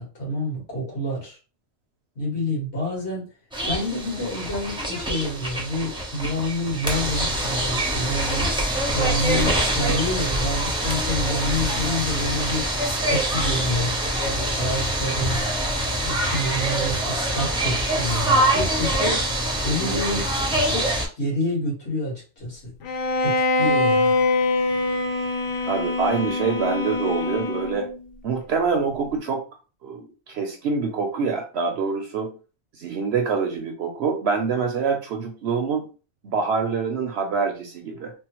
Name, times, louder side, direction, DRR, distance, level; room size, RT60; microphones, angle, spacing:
voice 1, 0.0-1.4 2.2-3.3 3.7-8.5 8.9-12.7 13.0-13.9 14.2-15.4 16.0-19.2 19.6-20.3 20.6-20.8 21.2-22.7 23.2-24.1, left 1 dB, 60° left, -5 dB, 1.9 m, -28 dB
sound 1, 3.5-21.1, right 1 dB, 5° right, 0.5 m, -24 dB
Bowed string instrument, 22.8-28.0, left 2 dB, 85° left, 1.0 m, -23 dB
voice 2, 25.7-27.9 28.2-29.4 29.8-32.4 32.7-35.8 36.2-38.1, right 5 dB, 65° right, 3 dB, 0.7 m, -25 dB
3.6 x 2.0 x 2.9 m, 0.34 s
omnidirectional pair, 1.3 m